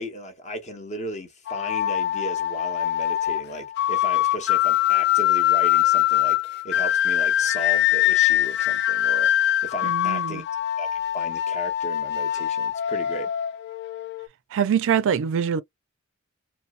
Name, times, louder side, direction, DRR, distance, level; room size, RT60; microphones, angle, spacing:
voice 1, 0.0-10.4 10.8-13.3, equal, 35° left, 0.9 m, -35 dB
sound 1, 1.5-14.3, left 13 dB, 50° left, 0.3 m, -23 dB
voice 2, 9.8-10.4 14.5-15.6, right 8 dB, 60° right, 0.4 m, -24 dB
4.0 x 2.0 x 2.4 m
head